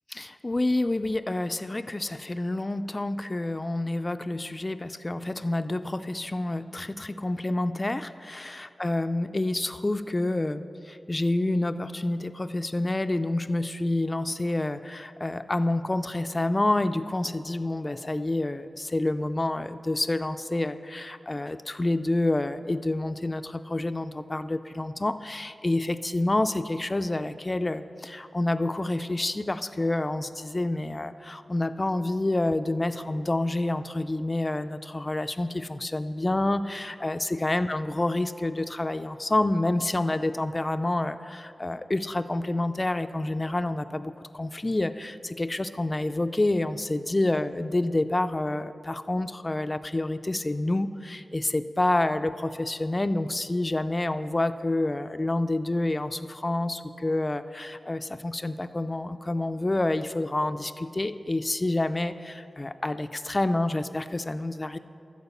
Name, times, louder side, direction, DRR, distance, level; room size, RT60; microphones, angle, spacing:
voice 1, 0.1-64.8, left 2 dB, 30° left, 11 dB, 0.4 m, -28 dB
12.5 x 4.7 x 6.9 m, 2.6 s
cardioid pair, 55°, 0 cm